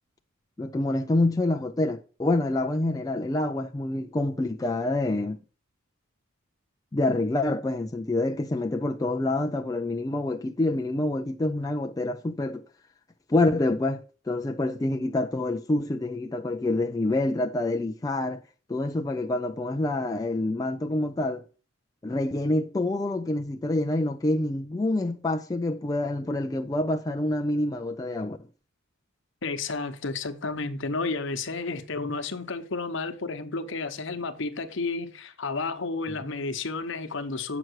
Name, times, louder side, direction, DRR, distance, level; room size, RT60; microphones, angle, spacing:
voice 1, 0.6-5.4 6.9-12.6 13.3-18.4 18.7-21.4 22.0-28.4, left 2 dB, 15° left, 0.3 m, -27 dB
voice 2, 29.4-37.6, left 3 dB, 60° left, 1.0 m, -31 dB
7.8 x 6.0 x 6.2 m
head